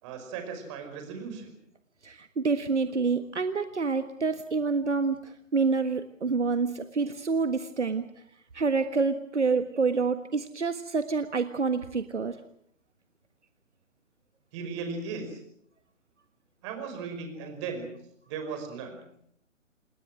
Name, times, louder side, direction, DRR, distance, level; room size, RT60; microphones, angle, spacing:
voice 1, 0.0-1.5 14.5-15.4 16.6-17.9 18.3-19.0, right 5 dB, 25° right, 6 dB, 5.3 m, -36 dB
voice 2, 2.0-8.0 8.5-12.4, right 4 dB, 60° right, 10 dB, 1.6 m, -27 dB
27.5 x 21.0 x 6.2 m, 0.68 s
figure-of-eight pair, 140°, 39 cm